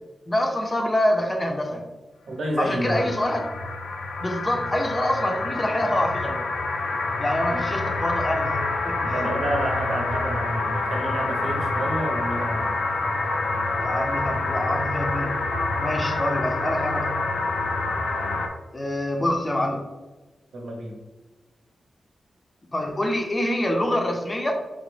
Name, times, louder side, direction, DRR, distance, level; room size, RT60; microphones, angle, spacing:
voice 1, 0.3-1.9 2.6-3.5 4.2-6.5 7.2-9.3 13.8-15.3 15.8-17.1 18.7-19.8 22.7-24.5, left 1 dB, 20° left, 3 dB, 0.5 m, -26 dB
voice 2, 2.3-3.2 7.4-7.6 9.1-12.8 20.5-21.0, right 1 dB, 80° right, 1 dB, 0.8 m, -29 dB
sound 1, 2.5-18.5, left 3 dB, 90° left, 0.4 m, -27 dB
4.9 x 2.1 x 3.2 m, 1.2 s
wide cardioid pair, 140°, 0 cm